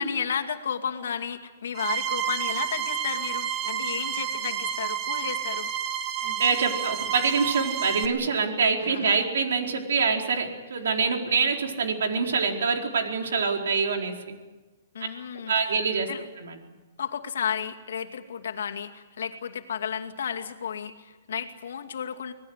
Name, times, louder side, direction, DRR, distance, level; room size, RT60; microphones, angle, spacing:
voice 1, 0.0-5.7 8.8-9.3 14.9-15.5 16.1-16.3 17.0-22.3, left 7 dB, 75° left, 5 dB, 2.4 m, -33 dB
sound 1, 1.7-8.0, right 9 dB, 25° right, 1.6 m, -30 dB
voice 2, 6.2-14.4 15.3-16.1 16.4-16.6, right 5 dB, 80° right, 2 dB, 4.5 m, -25 dB
26.0 x 19.0 x 8.2 m, 1.2 s
hypercardioid pair, 160°, 0 cm